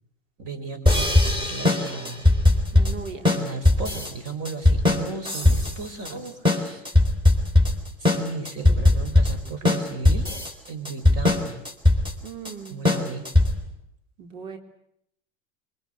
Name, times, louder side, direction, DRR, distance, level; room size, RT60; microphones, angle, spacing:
voice 1, 0.4-2.4 3.3-6.3 6.8-6.9 8.0-10.3 10.7-11.6 12.7-13.3, right 4 dB, 40° right, 9 dB, 5.4 m, -35 dB
sound 1, 0.9-13.7, left 2 dB, 10° right, 4.7 m, -20 dB
voice 2, 2.7-3.3 6.1-6.8 12.2-12.8 14.2-14.6, right 5 dB, 80° right, 5 dB, 3.5 m, -39 dB
26.5 x 24.0 x 8.1 m, 0.76 s
supercardioid pair, 115°, 38 cm